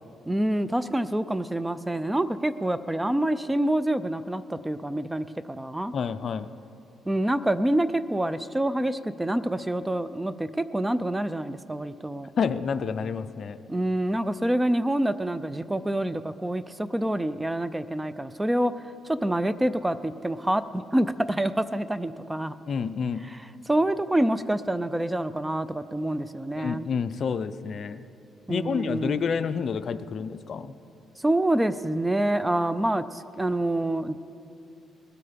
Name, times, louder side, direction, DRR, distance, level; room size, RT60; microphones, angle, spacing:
voice 1, 0.3-5.9 7.1-12.3 13.7-22.5 23.3-23.4 23.7-26.9 28.5-29.2 31.2-34.2, right 1 dB, 10° right, 14 dB, 0.4 m, -27 dB
voice 2, 5.9-6.5 12.4-13.6 22.7-23.2 26.5-28.0 28.5-30.7, left 6 dB, 55° left, 12 dB, 0.5 m, -29 dB
20.5 x 8.4 x 5.1 m, 2.6 s
cardioid pair, 90°, 0 cm